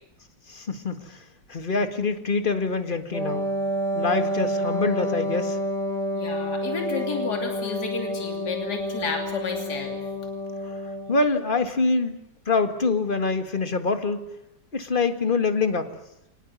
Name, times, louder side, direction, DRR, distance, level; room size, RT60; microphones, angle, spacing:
voice 1, 0.5-3.5 3.9-5.6 10.6-10.7 11.1-12.2 12.5-14.2 14.7-16.0, left 4 dB, 30° left, 8 dB, 1.9 m, -25 dB
Wind instrument woodwind instrument, 3.1-11.2, equal, ahead, 4.3 m, -29 dB
voice 2, 6.1-10.0, left 4 dB, 60° left, 3 dB, 3.5 m, -31 dB
24.0 x 19.5 x 9.6 m, 0.81 s
omnidirectional pair, 1.9 m